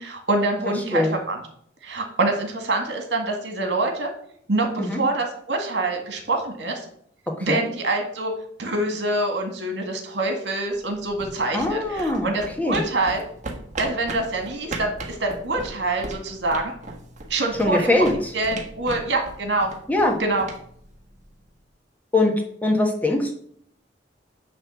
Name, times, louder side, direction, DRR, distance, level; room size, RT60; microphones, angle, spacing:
voice 1, 0.0-1.4 1.8-4.1 4.5-6.8 7.4-8.3 8.6-13.2 13.8-16.7 17.3-17.9 18.3-19.7 20.2-20.4, right 2 dB, 75° right, 3 dB, 1.9 m, -25 dB
sound 1, 10.7-21.5, right 2 dB, 45° right, 1.4 m, -38 dB
voice 2, 11.5-12.3 12.6-12.8 17.6-18.1 19.9-20.1 22.1-22.3 22.6-23.3, left 2 dB, 10° left, 1 dB, 1.3 m, -21 dB
9.9 x 3.3 x 6.9 m, 0.65 s
head